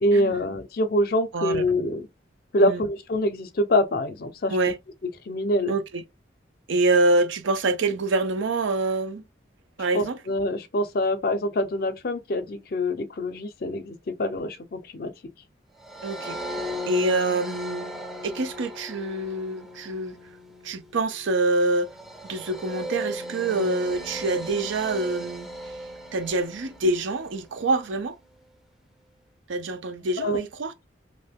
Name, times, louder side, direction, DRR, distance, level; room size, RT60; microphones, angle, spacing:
voice 1, 0.0-2.1 2.5-4.6 5.3-5.7 9.9-15.1 30.2-30.4, left 1 dB, 50° left, 0.5 m, -25 dB
voice 2, 1.3-1.6 2.6-2.8 4.5-4.8 5.7-6.0 6.7-9.2 9.8-10.2 16.0-16.4 16.9-20.2 20.6-21.9 22.2-25.5 26.1-28.2 29.5-30.7, right 2 dB, 85° right, 0.5 m, -26 dB
sound 1, 15.8-27.2, equal, ahead, 0.4 m, -37 dB
2.6 x 2.2 x 3.3 m
head